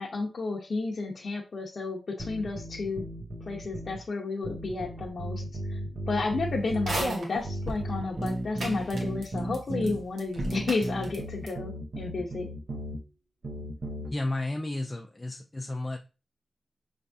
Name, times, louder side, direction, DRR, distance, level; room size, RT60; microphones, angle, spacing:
voice 1, 0.0-3.0 3.4-5.4 5.7-5.8 6.1-12.5, left 3 dB, 50° left, -2 dB, 0.7 m, -32 dB
sound 1, 2.2-4.0 4.4-7.1 7.4-10.0 10.4-13.0 13.4-14.1, right 1 dB, 50° right, 0.9 m, -35 dB
sound 2, 6.7-7.8 8.2-8.3 8.6-9.6 9.8-9.9 10.2-11.2 11.5-11.6, right 1 dB, 90° right, 1.3 m, -33 dB
voice 2, 14.1-16.0, left 2 dB, 20° left, 3 dB, 0.4 m, -32 dB
5.7 x 3.4 x 2.7 m, 0.32 s
wide cardioid pair, 160°, 0 cm